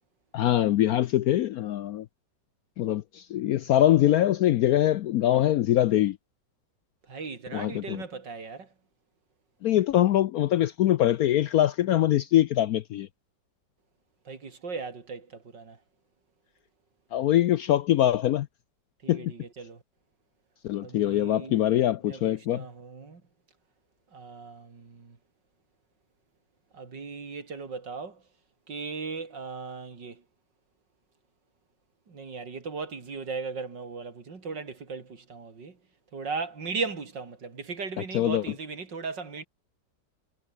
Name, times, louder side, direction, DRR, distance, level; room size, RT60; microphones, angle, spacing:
voice 1, 0.3-2.1 2.8-6.2 7.5-8.0 9.6-13.1 17.1-18.5 19.1-19.3 20.6-22.7 38.1-38.4, left 12 dB, 70° left, 0.9 m, -23 dB
voice 2, 7.1-8.7 14.3-15.8 19.0-19.8 20.8-23.2 24.1-25.2 26.7-28.2 28.7-30.2 32.1-35.8 36.1-39.4, right 4 dB, 70° right, 3.8 m, -37 dB
omnidirectional pair, 2.0 m